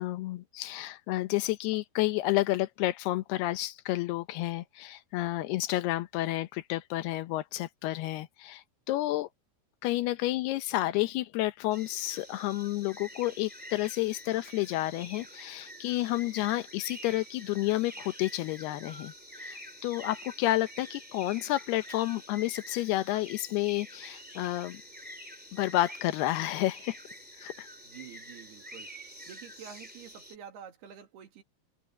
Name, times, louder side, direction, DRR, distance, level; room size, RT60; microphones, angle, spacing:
voice 1, 0.0-9.3 9.8-24.8 25.5-27.0 27.4-27.7, left 16 dB, 80° left, 2.8 m, -30 dB
sound 1, 11.7-30.4, equal, 5° right, 2.1 m, -47 dB
voice 2, 27.8-31.4, right 8 dB, 75° right, 4.4 m, -49 dB
omnidirectional pair, 4.7 m